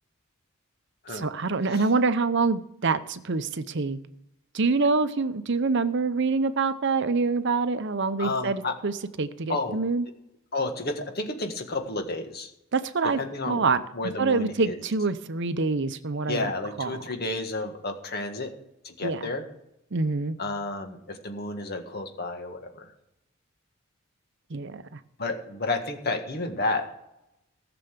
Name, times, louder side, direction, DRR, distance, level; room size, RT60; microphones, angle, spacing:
voice 1, 1.1-4.0 4.5-10.1 12.7-13.2 13.5-13.8 14.2-16.5 16.8-17.0 19.0-19.3 19.9-20.4 24.5-25.0, right 4 dB, 55° right, 12 dB, 0.7 m, -26 dB
voice 2, 8.2-8.8 9.5-9.8 10.5-12.5 13.1-13.6 13.9-14.8 16.3-18.5 18.8-19.5 20.4-22.9 25.2-26.9, left 2 dB, 45° left, 5 dB, 1.7 m, -31 dB
15.5 x 6.9 x 6.7 m, 0.85 s
head